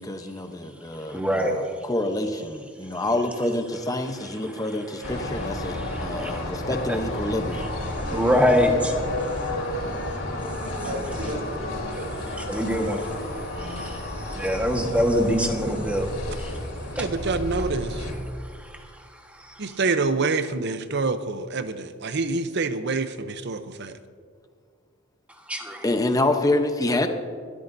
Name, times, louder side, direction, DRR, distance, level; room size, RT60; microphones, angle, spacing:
voice 1, 0.0-7.7 25.8-27.1, left 1 dB, 20° left, 6 dB, 0.8 m, -27 dB
voice 2, 1.1-1.5 6.2-6.4 6.9-7.0 8.1-8.7 12.5-13.0 13.8-13.9 14.4-16.1 17.0-17.1 25.5-25.8, equal, 5° right, 2 dB, 1.4 m, -23 dB
sound 1, 5.0-18.1, left 1 dB, 75° left, 3.6 m, -32 dB
voice 3, 8.1-8.7 10.8-12.4, right 1 dB, 75° right, 0 dB, 2.8 m, -35 dB
voice 4, 17.0-18.1 19.6-24.0, right 3 dB, 60° right, 11 dB, 0.7 m, -26 dB
22.5 x 13.0 x 2.7 m, 2.1 s
head